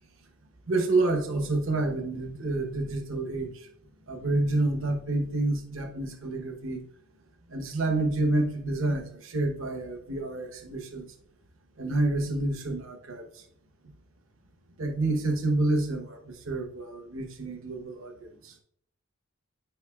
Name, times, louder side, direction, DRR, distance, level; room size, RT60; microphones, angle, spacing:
voice 1, 0.7-3.7 4.1-6.8 7.5-11.1 11.8-13.2 14.8-18.5, right 2 dB, 65° right, 4 dB, 0.9 m, -28 dB
9.0 x 4.8 x 2.3 m, 0.65 s
head